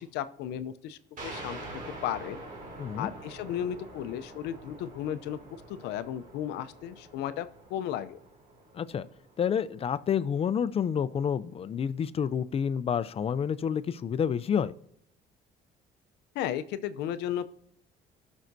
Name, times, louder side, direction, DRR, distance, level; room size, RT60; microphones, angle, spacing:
voice 1, 0.0-1.6 2.0-2.4 3.0-5.4 5.7-8.2 16.3-17.5, left 10 dB, 90° left, 12 dB, 0.6 m, -34 dB
sound 1, 1.2-10.4, right 2 dB, 50° right, 2.5 m, -46 dB
voice 2, 2.8-3.1 8.7-9.1 9.4-14.7, left 7 dB, 35° left, 15 dB, 0.5 m, -29 dB
17.5 x 6.3 x 2.7 m, 0.71 s
cardioid pair, 110°, 17 cm